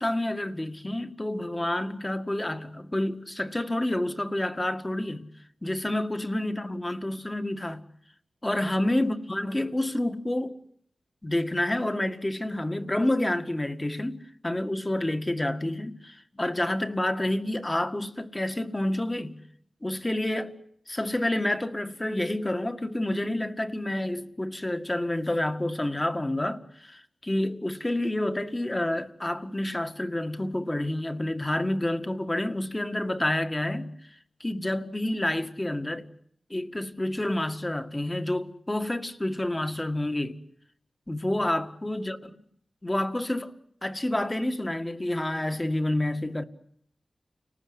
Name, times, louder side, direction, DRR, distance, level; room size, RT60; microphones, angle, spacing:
voice 1, 0.0-5.3 5.6-7.8 8.4-10.6 11.2-19.4 19.8-20.5 20.9-33.9 34.4-36.0 36.5-40.4 41.1-42.3 42.8-43.5 43.8-46.4, left 1 dB, 25° left, 2.0 m, -29 dB
30.0 x 19.5 x 9.7 m
wide cardioid pair, 60°, 0 cm